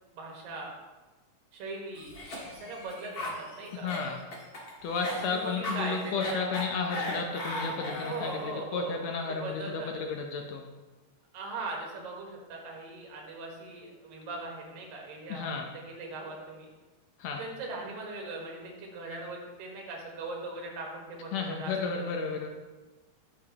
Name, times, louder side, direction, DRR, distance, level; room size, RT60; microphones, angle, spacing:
voice 1, 0.1-0.8 1.5-3.9 5.2-6.6 8.0-9.9 11.3-15.5 15.8-16.7 17.3-22.1, right 2 dB, 90° right, -1 dB, 3.3 m, -40 dB
Cough, 2.0-8.5, left 1 dB, 45° left, 1.3 m, -37 dB
voice 2, 3.8-4.2 4.8-8.4 8.7-10.6 15.3-15.6 17.2-17.4 21.3-22.5, left 5 dB, 80° left, 2 dB, 1.6 m, -32 dB
12.0 x 6.2 x 2.9 m, 1.2 s
omnidirectional pair, 3.9 m